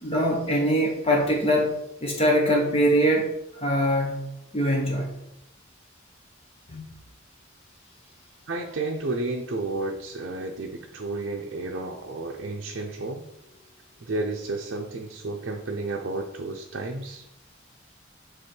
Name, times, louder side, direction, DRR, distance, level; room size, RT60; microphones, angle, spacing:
voice 1, 0.0-1.7 2.0-3.3 3.6-4.3 4.5-5.1 6.7-6.8, equal, 30° left, -1 dB, 1.0 m, -23 dB
voice 2, 8.5-13.2 14.0-17.3, right 2 dB, 60° right, 0 dB, 0.6 m, -32 dB
6.8 x 3.5 x 4.4 m, 0.83 s
head